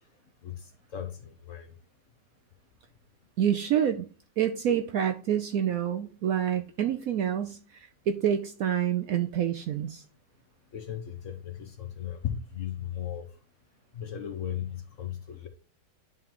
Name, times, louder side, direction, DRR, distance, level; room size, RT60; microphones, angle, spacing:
voice 1, 0.4-1.7 10.7-13.3 13.9-15.5, left 10 dB, 60° left, 0.9 m, -36 dB
voice 2, 3.4-4.1 4.4-7.6 8.1-10.0, right 9 dB, 70° right, 0.8 m, -27 dB
11.0 x 3.7 x 3.0 m
omnidirectional pair, 1.9 m